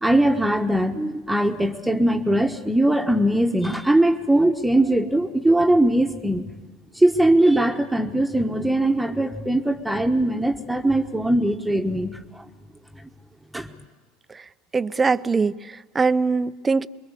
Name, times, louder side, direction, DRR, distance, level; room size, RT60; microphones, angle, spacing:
voice 1, 0.0-6.4 6.9-12.4 13.5-13.7, right 1 dB, 5° right, 1.3 m, -20 dB
voice 2, 14.7-16.9, right 4 dB, 20° right, 0.7 m, -22 dB
25.0 x 22.5 x 8.3 m
hypercardioid pair, 80°, 0 cm